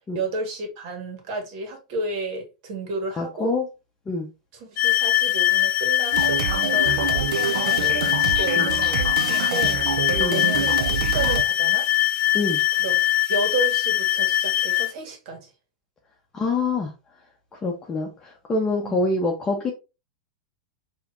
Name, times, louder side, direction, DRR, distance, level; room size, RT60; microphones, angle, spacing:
voice 1, 0.1-3.5 4.5-9.9 10.3-11.9 12.8-13.0 13.3-15.5 18.8-19.0, right 3 dB, 55° right, 1.7 m, -32 dB
voice 2, 3.2-3.7 4.1-4.3 8.6-8.7 10.1-10.4 12.3-12.6 16.3-16.9 17.6-19.7, left 3 dB, 20° left, 0.9 m, -25 dB
sound 1, 4.8-14.9, left 14 dB, 35° left, 0.4 m, -22 dB
sound 2, 6.1-11.4, right 8 dB, 75° right, 0.5 m, -27 dB
4.8 x 2.9 x 2.6 m
hypercardioid pair, 115°, 4 cm